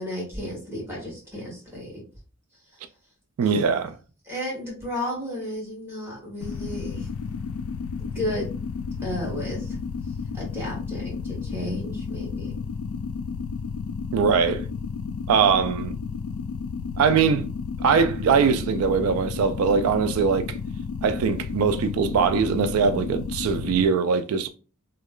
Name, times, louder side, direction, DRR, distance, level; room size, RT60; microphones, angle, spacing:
voice 1, 0.0-2.0 3.4-3.8 4.3-7.1 8.1-8.5 9.0-9.8 10.3-12.5, equal, 10° right, 1.6 m, -33 dB
voice 2, 3.4-4.0 14.1-14.7 15.3-16.0 17.0-17.5 17.8-20.6 21.0-24.5, right 6 dB, 80° right, 0.3 m, -21 dB
sound 1, 6.4-23.9, left 5 dB, 75° left, 0.3 m, -32 dB
3.1 x 2.3 x 3.6 m
head